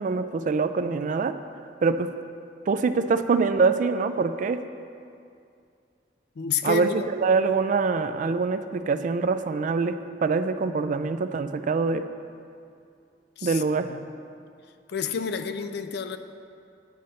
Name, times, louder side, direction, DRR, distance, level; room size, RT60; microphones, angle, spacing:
voice 1, 0.0-1.4 1.8-2.1 2.7-4.6 6.6-12.0 13.4-13.9, right 4 dB, 45° right, 10 dB, 0.3 m, -24 dB
voice 2, 6.4-7.1 13.4-14.1 14.9-16.2, left 5 dB, 65° left, 9 dB, 0.4 m, -30 dB
9.3 x 4.2 x 6.3 m, 2.4 s
head